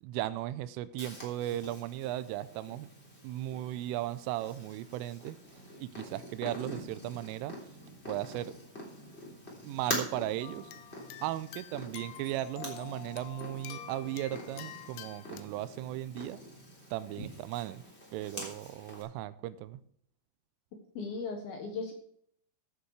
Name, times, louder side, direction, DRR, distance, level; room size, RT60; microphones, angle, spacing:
voice 1, 0.0-2.9 3.2-5.4 5.8-7.6 8.1-8.5 9.6-10.7 11.2-16.4 16.9-17.8 18.1-19.8, right 14 dB, 85° right, 15 dB, 3.1 m, -36 dB
Purr, 1.0-19.0, left 1 dB, 15° left, 2.6 m, -45 dB
sound 1, 10.4-15.4, left 11 dB, 90° left, 3.4 m, -47 dB
voice 2, 21.0-21.9, left 4 dB, 65° left, 4 dB, 2.6 m, -37 dB
14.5 x 7.8 x 4.8 m, 0.65 s
omnidirectional pair, 5.7 m